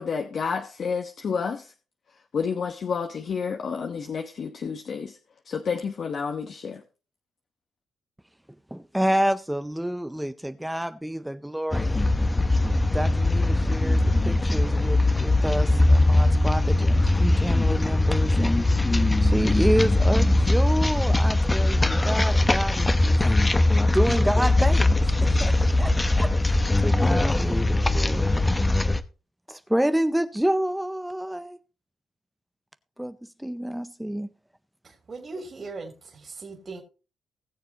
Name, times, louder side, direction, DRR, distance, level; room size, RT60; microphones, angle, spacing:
voice 1, 0.0-1.7 2.3-5.2 5.5-6.8, left 6 dB, 50° left, 1.0 m, -30 dB
voice 2, 8.7-12.1 12.9-18.6 19.2-23.2 23.8-28.4 29.5-31.6 33.0-34.3, right 1 dB, 5° right, 0.5 m, -28 dB
sound 1, 11.7-29.0, left 2 dB, 15° left, 0.9 m, -21 dB
voice 3, 34.8-36.8, right 3 dB, 35° right, 3.0 m, -39 dB
20.0 x 6.9 x 2.9 m
cardioid pair, 90°, 0 cm